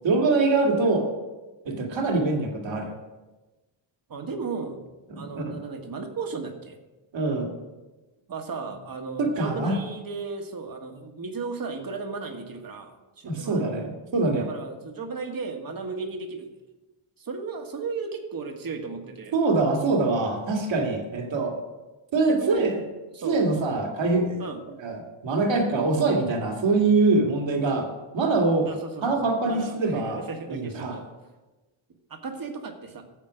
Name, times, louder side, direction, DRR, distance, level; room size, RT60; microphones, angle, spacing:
voice 1, 0.0-1.1 1.6-2.9 5.1-5.6 7.1-7.5 9.2-9.8 13.3-14.5 19.3-21.6 22.1-22.8 23.2-24.4 24.8-27.9 28.1-28.7 29.0-30.2 30.5-31.0, right 3 dB, 65° right, 2 dB, 2.3 m, -24 dB
voice 2, 4.1-4.8 5.2-6.8 8.3-13.6 14.4-16.5 17.2-19.4 22.3-22.7 23.1-23.4 24.4-24.6 28.7-31.1 32.1-33.0, right 4 dB, 45° right, 5 dB, 1.6 m, -35 dB
13.5 x 7.5 x 5.1 m, 1.2 s
cardioid pair, 115°, 50 cm